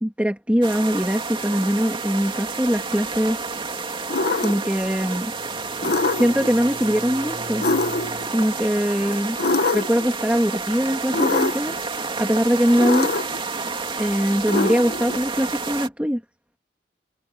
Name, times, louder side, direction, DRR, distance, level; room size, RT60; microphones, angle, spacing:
voice 1, 0.0-3.4 4.4-5.3 5.8-7.7 8.3-9.4 9.7-11.7 12.2-13.1 14.0-16.2, equal, 10° right, 3.0 m, -22 dB
sound 1, 0.6-15.9, right 4 dB, 30° right, 2.8 m, -30 dB
sound 2, 4.1-4.7 5.8-6.5 7.6-8.3 9.4-10.1 11.1-11.7 12.8-13.4 14.5-15.2, left 3 dB, 60° left, 1.3 m, -23 dB
Bowed string instrument, 4.6-8.4, right 1 dB, 45° right, 6.0 m, -41 dB
head